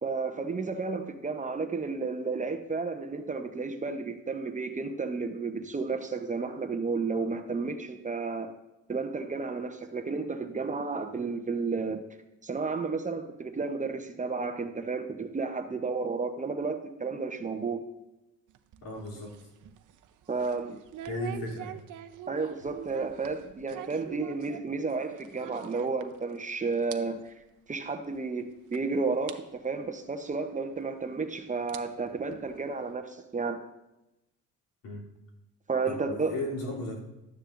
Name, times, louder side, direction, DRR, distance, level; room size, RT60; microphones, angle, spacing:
voice 1, 0.0-8.5 8.9-12.0 12.4-17.8 20.3-20.8 22.3-27.3 27.7-28.4 28.7-33.6 35.7-36.3, right 4 dB, 25° right, 7 dB, 0.8 m, -32 dB
sound 1, 18.5-26.4 26.7-27.0 27.3-27.4 28.1-28.2 28.7-28.8 29.3-29.4 30.7-30.8 31.5-32.9, right 12 dB, 65° right, 0.7 m, -45 dB
voice 2, 18.8-19.3 21.1-21.8 34.8-35.0 35.9-37.0, left 2 dB, 80° left, -3 dB, 3.1 m, -35 dB
13.0 x 9.8 x 2.6 m, 0.95 s
cardioid pair, 110°, 33 cm